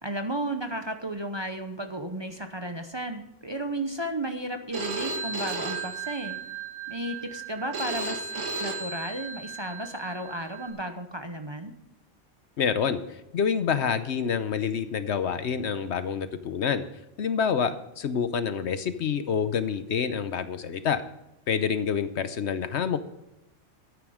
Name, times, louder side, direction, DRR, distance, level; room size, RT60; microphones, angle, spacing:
voice 1, 0.0-6.4 6.9-8.3 8.6-11.7, right 1 dB, 25° right, 5 dB, 0.8 m, -33 dB
Telephone, 4.7-10.7, right 4 dB, 75° right, 2.0 m, -35 dB
voice 2, 12.6-16.8 17.2-21.0 21.5-23.0, left 7 dB, 65° left, 11 dB, 1.1 m, -27 dB
13.5 x 9.4 x 5.0 m, 0.90 s
omnidirectional pair, 1.3 m